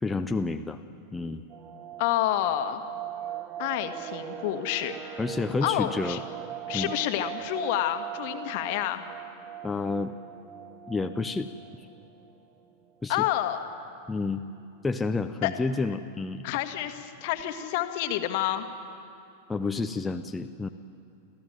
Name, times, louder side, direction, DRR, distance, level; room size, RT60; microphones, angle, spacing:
voice 1, 0.0-0.8 1.1-1.4 5.2-6.2 6.7-6.9 9.6-10.1 10.9-11.5 13.0-13.2 14.1-14.4 14.8-16.4 19.5-20.7, left 3 dB, 10° left, 6 dB, 0.7 m, -29 dB
sound 1, 1.5-12.3 12.6-12.7 13.0-13.2 13.7-14.1 14.6-14.7 14.9-15.4 15.7-15.8, right 11 dB, 30° right, 0.7 m, -40 dB
voice 2, 2.0-2.8 3.6-5.2 5.6-6.2 6.7-9.0 13.1-13.6 15.4-15.5 16.4-18.7, left 13 dB, 50° left, 8 dB, 1.5 m, -29 dB
25.0 x 15.0 x 9.2 m, 2.6 s
figure-of-eight pair, 90°, 0 cm